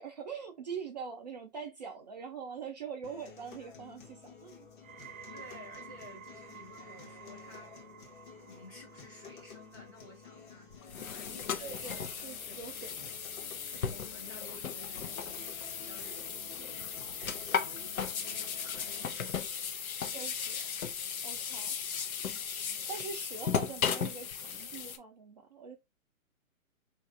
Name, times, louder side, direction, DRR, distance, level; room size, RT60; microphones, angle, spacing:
voice 1, 0.0-4.7 11.6-13.0 20.1-20.6 21.2-21.8 22.9-25.8, right 6 dB, 30° right, 0.5 m, -43 dB
sound 1, 3.0-19.0, left 5 dB, 35° left, 0.9 m, -53 dB
sound 2, 4.8-16.0 16.3-16.8 17.5-17.6, right 7 dB, 70° right, 0.8 m, -54 dB
voice 2, 5.3-7.8 8.5-10.7 11.0-12.4 13.7-19.7 22.6-22.9, left 2 dB, 15° left, 0.6 m, -53 dB
sound 3, 10.7-25.0, left 7 dB, 75° left, 0.8 m, -36 dB
3.0 x 2.6 x 3.6 m
hypercardioid pair, 145°, 42 cm